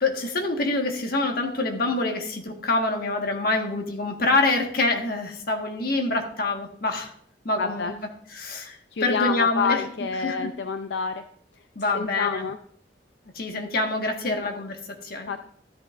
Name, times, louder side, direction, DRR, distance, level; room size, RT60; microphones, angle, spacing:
voice 1, 0.0-7.1 7.4-7.9 8.4-9.8 10.2-10.5 11.7-12.4 13.3-15.3, left 2 dB, 55° left, 3 dB, 1.5 m, -26 dB
voice 2, 7.6-7.9 8.9-11.2 11.5-11.6 11.9-12.6 14.3-14.5 15.3-15.4, left 5 dB, 80° left, 8 dB, 0.5 m, -28 dB
13.0 x 9.8 x 2.5 m, 0.64 s
head